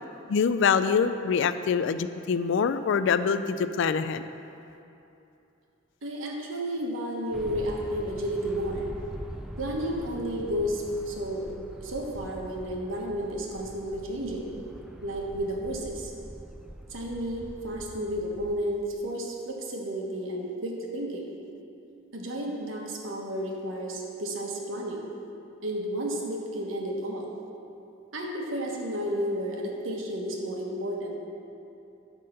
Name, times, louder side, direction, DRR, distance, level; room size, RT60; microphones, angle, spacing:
voice 1, 0.3-4.2, left 6 dB, 65° left, 12 dB, 0.3 m, -25 dB
voice 2, 6.0-8.9 9.6-11.5 11.8-14.5 15.0-16.1 16.9-21.3 22.1-25.1 25.6-27.3 28.1-31.2, equal, 80° right, -1 dB, 1.3 m, -32 dB
sound 1, 7.3-18.5, equal, 5° right, 0.4 m, -43 dB
10.5 x 3.7 x 6.6 m, 2.8 s
head